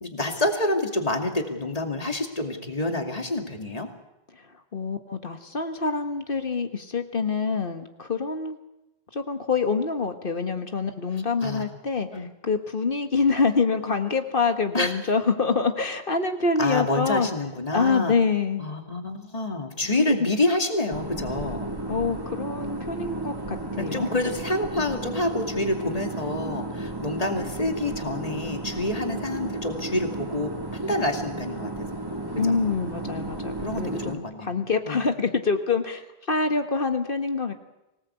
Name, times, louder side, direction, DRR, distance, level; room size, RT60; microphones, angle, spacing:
voice 1, 0.0-3.9 11.4-11.6 12.1-12.3 14.7-14.9 16.6-18.1 18.6-21.7 23.8-32.0 32.4-32.5 33.6-34.6 34.9-35.0, left 2 dB, 35° left, 4 dB, 2.7 m, -28 dB
voice 2, 4.7-8.6 9.1-17.3 17.7-18.7 19.8-20.0 21.9-24.1 32.4-37.5, left 4 dB, 60° left, 7 dB, 1.7 m, -26 dB
sound 1, 20.9-34.1, right 2 dB, 20° right, 2.3 m, -33 dB
24.5 x 18.5 x 8.2 m, 0.93 s
omnidirectional pair, 1.0 m